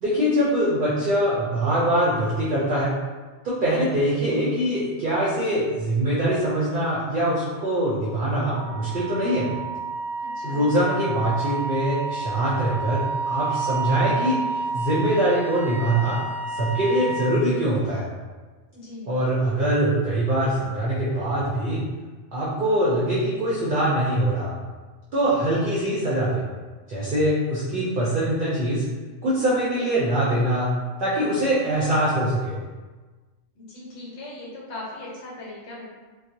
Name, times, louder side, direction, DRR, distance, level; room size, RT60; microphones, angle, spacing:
voice 1, 0.0-2.9 3.4-9.5 10.4-14.4 14.7-16.2 16.5-18.1 19.1-21.8 22.3-24.5 25.1-26.4 26.9-28.8 29.2-30.7 31.0-32.6, right 1 dB, 55° right, -8 dB, 0.6 m, -23 dB
Wind instrument woodwind instrument, 8.0-17.4, right 3 dB, 40° left, 0.7 m, -30 dB
voice 2, 10.2-10.7 18.7-19.1 33.5-35.9, left 2 dB, 70° left, -5 dB, 1.0 m, -39 dB
2.3 x 2.0 x 2.7 m, 1.3 s
omnidirectional pair, 1.2 m